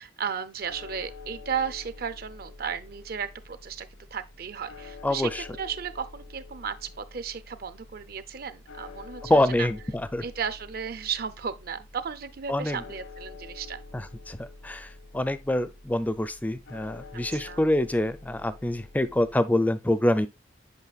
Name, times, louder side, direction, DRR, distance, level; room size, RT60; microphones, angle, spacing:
voice 1, 0.0-9.7 10.2-13.8 17.3-17.6, right 7 dB, 55° right, 0.5 m, -34 dB
sound 1, 0.6-19.4, left 3 dB, 80° left, 1.3 m, -47 dB
voice 2, 5.0-5.5 9.3-10.2 12.5-12.8 13.9-20.3, left 1 dB, 10° left, 0.4 m, -26 dB
8.3 x 5.5 x 2.3 m
head